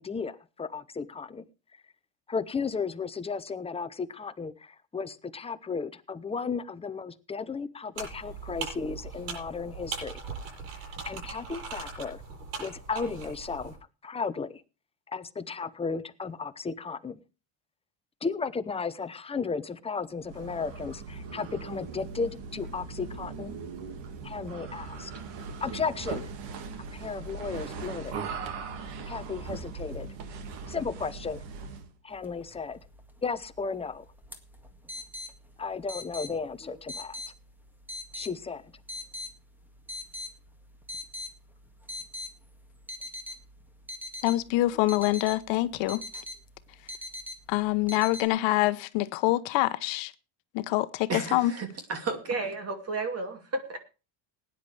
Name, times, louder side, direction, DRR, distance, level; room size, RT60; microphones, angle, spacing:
voice 1, 0.0-1.4 2.3-10.2 11.0-12.2 12.6-13.8 14.0-14.6 15.1-17.2 18.2-23.6 24.2-25.1 25.6-26.3 26.8-28.2 29.1-30.1 30.7-31.4 32.0-32.8 33.2-34.1 35.6-37.2 38.1-38.6, left 5 dB, 10° left, 0.7 m, -34 dB
sound 1, 8.0-13.8, right 5 dB, 85° right, 7.9 m, -40 dB
sound 2, 20.2-31.9, right 5 dB, 60° right, 2.1 m, -39 dB
sound 3, 32.1-48.3, left 2 dB, 5° right, 1.8 m, -43 dB
voice 2, 44.2-46.0 47.5-50.1 50.5-51.5, left 17 dB, 65° left, 1.0 m, -25 dB
voice 3, 51.1-53.8, right 3 dB, 30° right, 2.5 m, -32 dB
19.0 x 10.0 x 3.3 m
cardioid pair, 130°, 48 cm